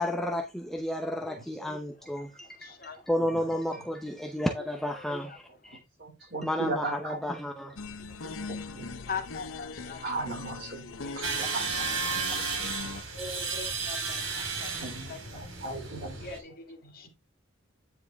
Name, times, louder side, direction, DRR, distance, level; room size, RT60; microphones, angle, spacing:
voice 1, 0.0-2.7 3.1-5.8 6.4-7.8, left 1 dB, ahead, 0.7 m, -32 dB
voice 2, 1.3-1.7 2.5-3.9 4.6-5.4 5.6-5.7 7.8-8.5 9.0-10.3 10.8-15.5 16.2-17.1, left 5 dB, 45° left, 2.1 m, -44 dB
voice 3, 5.7-7.2 8.0-8.9 10.0-12.4 12.7-13.2 14.8-15.2 15.6-16.2 16.8-17.1, right 2 dB, 55° right, 4.9 m, -38 dB
sound 1, 7.8-13.0, left 4 dB, 85° left, 0.9 m, -41 dB
sound 2, 11.2-16.4, right 4 dB, 80° right, 2.9 m, -33 dB
9.7 x 4.8 x 3.4 m
head